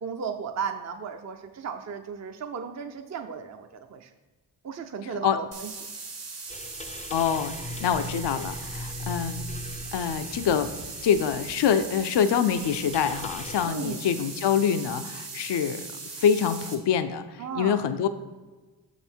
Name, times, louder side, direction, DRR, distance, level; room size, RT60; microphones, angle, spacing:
voice 1, 0.0-4.1 4.6-5.8 13.6-14.0 17.4-17.8, right 6 dB, 40° right, 6 dB, 0.6 m, -35 dB
sound 1, 5.5-16.8, right 4 dB, 70° right, 1.6 m, -39 dB
sound 2, 6.5-13.7, left 1 dB, 15° left, 0.4 m, -40 dB
voice 2, 7.1-9.4 9.9-10.7 11.0-15.9 16.2-18.1, left 8 dB, 65° left, 10 dB, 0.6 m, -25 dB
6.4 x 5.8 x 4.4 m, 1.3 s
cardioid pair, 55°, 44 cm